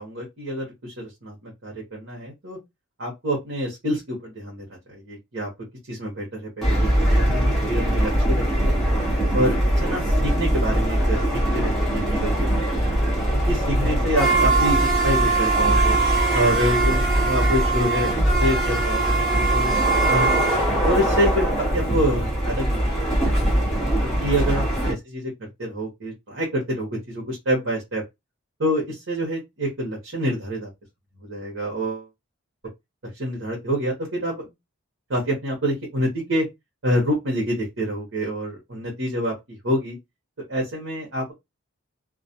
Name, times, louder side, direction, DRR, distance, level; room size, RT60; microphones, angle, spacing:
voice 1, 0.0-2.6 3.0-4.6 5.0-5.5 5.9-8.8 9.3-12.9 13.5-16.0 16.3-19.7 20.1-20.4 20.7-22.8 23.1-23.5 24.0-25.3 25.6-28.0 28.6-30.7 31.2-32.1 33.1-34.5 35.1-36.5 36.8-40.0 40.5-41.3, equal, 65° right, 0.9 m, -27 dB
sound 1, 6.6-24.9, right 1 dB, ahead, 0.9 m, -21 dB
2.3 x 2.1 x 2.7 m
head